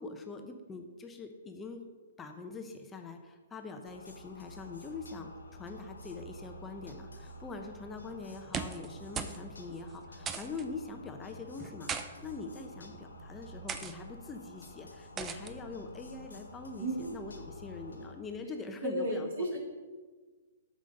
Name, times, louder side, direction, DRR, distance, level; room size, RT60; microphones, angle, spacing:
voice 1, 0.0-1.8 2.2-11.9 12.2-19.3, left 4 dB, 15° left, 5 dB, 0.9 m, -43 dB
sound 1, 3.9-18.2, left 1 dB, 85° left, 1.6 m, -50 dB
sound 2, 8.4-8.9 9.1-9.4 9.7-9.8 10.3-10.6 11.6-12.1 12.8-13.1 13.7-13.9 15.2-15.5, right 6 dB, 20° right, 0.7 m, -37 dB
voice 2, 16.8-17.2 18.8-19.6, right 1 dB, 65° right, -1 dB, 3.0 m, -33 dB
8.3 x 6.3 x 5.3 m, 1.4 s
figure-of-eight pair, 125°, 0 cm